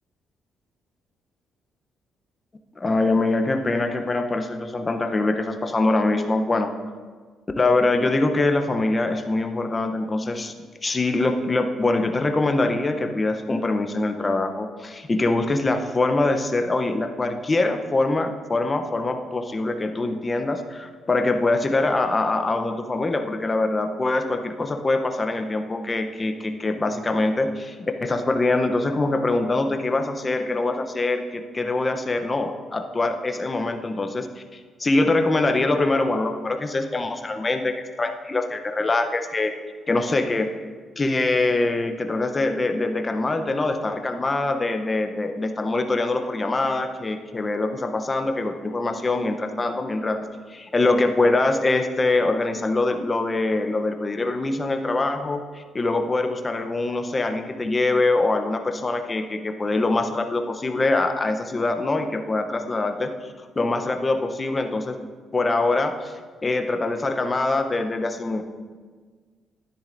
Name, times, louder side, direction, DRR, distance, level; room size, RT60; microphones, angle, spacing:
voice 1, 2.8-6.7 7.6-10.5 10.8-39.5 39.9-40.5 41.0-50.2 50.5-65.0 65.3-66.1 66.4-68.4, left 2 dB, 25° left, 6 dB, 0.7 m, -24 dB
10.5 x 9.9 x 2.6 m, 1.5 s
cardioid pair, 90°, 0 cm